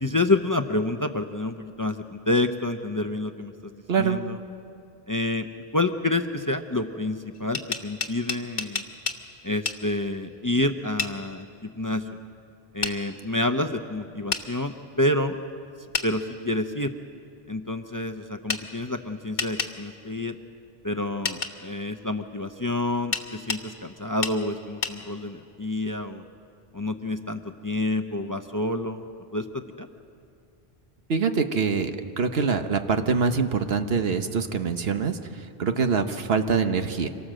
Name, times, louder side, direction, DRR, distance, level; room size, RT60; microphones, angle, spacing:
voice 1, 0.0-3.7 4.0-4.4 5.1-5.5 5.7-8.8 9.4-12.2 12.7-15.4 16.0-16.9 17.5-20.4 20.8-26.2 26.7-29.0 29.3-29.9, left 2 dB, 20° left, 7 dB, 0.6 m, -28 dB
sound 1, 7.3-9.2 9.7-9.8 11.0-11.1 12.8-13.0 14.3-14.5 15.9-16.1 18.5-18.6 19.4-19.7 21.2-21.5 23.1-23.6 24.2-24.4 24.8-25.0, left 4 dB, 50° left, 1.2 m, -29 dB
voice 2, 31.1-31.9 32.2-35.2 35.6-37.1, right 5 dB, 70° right, 8 dB, 1.3 m, -24 dB
25.5 x 18.0 x 7.6 m, 2.6 s
omnidirectional pair, 1.1 m